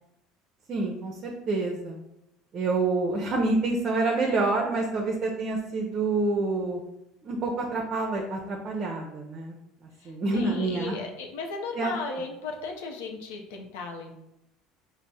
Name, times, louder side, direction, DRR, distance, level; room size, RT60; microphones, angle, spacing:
voice 1, 0.7-2.0 2.5-6.8 7.2-9.6 10.1-11.0 11.8-11.9, right 3 dB, 40° right, 1 dB, 0.5 m, -27 dB
voice 2, 10.0-14.1, left 4 dB, 90° left, 2 dB, 0.5 m, -36 dB
3.4 x 2.0 x 4.0 m, 0.88 s
supercardioid pair, 100°, 0 cm